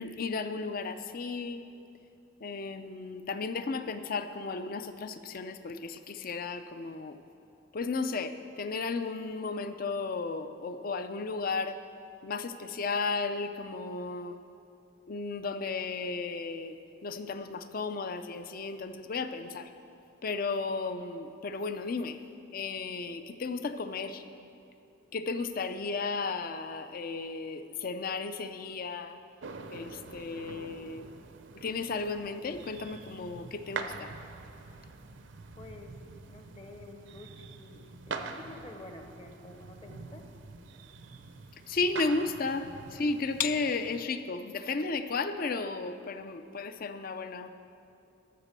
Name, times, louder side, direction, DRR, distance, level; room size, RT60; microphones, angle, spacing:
voice 1, 0.0-1.6 2.4-7.2 7.7-11.8 12.2-14.4 15.1-19.7 20.2-22.2 22.5-24.2 25.1-29.2 29.7-31.1 31.5-34.1 41.7-47.5, left 4 dB, 45° left, 10 dB, 0.5 m, -34 dB
sound 1, 29.4-44.0, right 4 dB, 60° right, 0.6 m, -45 dB
voice 2, 35.6-36.0 36.3-40.3, left 2 dB, 25° left, 4 dB, 0.8 m, -49 dB
13.5 x 5.9 x 6.7 m, 2.7 s
head